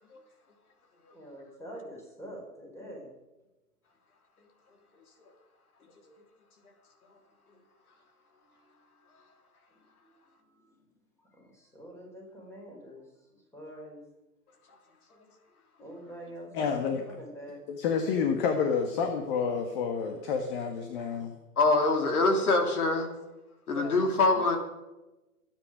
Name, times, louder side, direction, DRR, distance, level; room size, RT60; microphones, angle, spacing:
voice 1, 1.1-3.1 8.6-8.7 10.6-10.7 11.3-14.0 15.8-16.8 17.1-17.6, right 1 dB, 5° left, 0 dB, 4.7 m, -45 dB
voice 2, 16.5-17.0 17.7-21.3 23.7-24.0, left 6 dB, 35° left, 5 dB, 1.8 m, -29 dB
voice 3, 21.6-23.1 23.7-24.6, left 3 dB, 65° left, 4 dB, 3.2 m, -24 dB
24.5 x 9.5 x 5.1 m, 1.0 s
hypercardioid pair, 130°, 46 cm